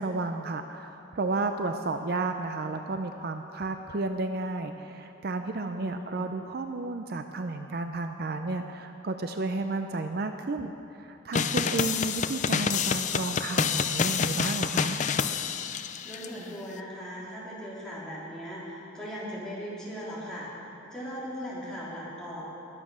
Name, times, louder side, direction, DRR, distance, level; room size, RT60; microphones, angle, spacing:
voice 1, 0.0-15.0, right 3 dB, 50° right, 7 dB, 0.5 m, -32 dB
voice 2, 5.7-6.2 11.7-11.9 16.0-20.5 20.9-22.4, equal, 5° left, -8 dB, 3.3 m, -38 dB
sound 1, 11.3-16.3, left 6 dB, 40° left, 0.4 m, -28 dB
21.0 x 7.6 x 6.2 m, 2.9 s
head